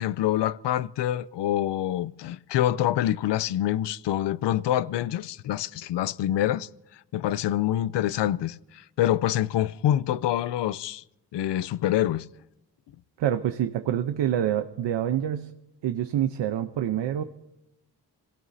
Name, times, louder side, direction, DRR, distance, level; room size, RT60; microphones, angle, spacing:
voice 1, 0.0-6.7 7.1-11.0 11.3-12.3, left 12 dB, 75° left, 0.6 m, -26 dB
voice 2, 13.2-15.5 15.8-17.2, right 10 dB, 90° right, 0.9 m, -26 dB
29.5 x 17.0 x 2.8 m
wide cardioid pair, 170°, 42 cm